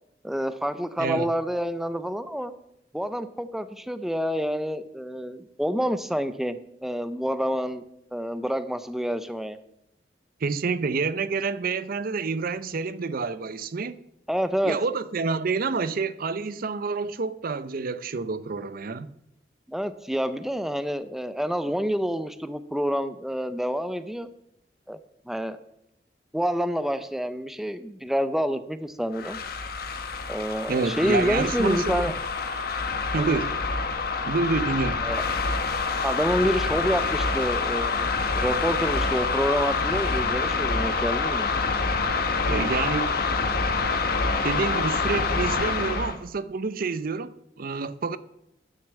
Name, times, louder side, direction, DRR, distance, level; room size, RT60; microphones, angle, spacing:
voice 1, 0.2-2.5 2.9-7.8 8.1-9.6 14.3-14.8 19.7-24.3 24.9-25.0 25.3-25.6 26.3-29.4 30.3-32.1 33.2-33.4 35.0-35.2 36.0-41.5, equal, ahead, 0.5 m, -28 dB
voice 2, 1.0-1.3 10.4-14.0 14.6-19.1 30.7-32.1 33.1-33.6 34.3-35.1 42.4-43.2 44.4-48.2, right 4 dB, 55° right, 0.6 m, -28 dB
sound 1, 29.1-46.2, left 4 dB, 60° left, 1.1 m, -26 dB
10.0 x 6.6 x 8.1 m
head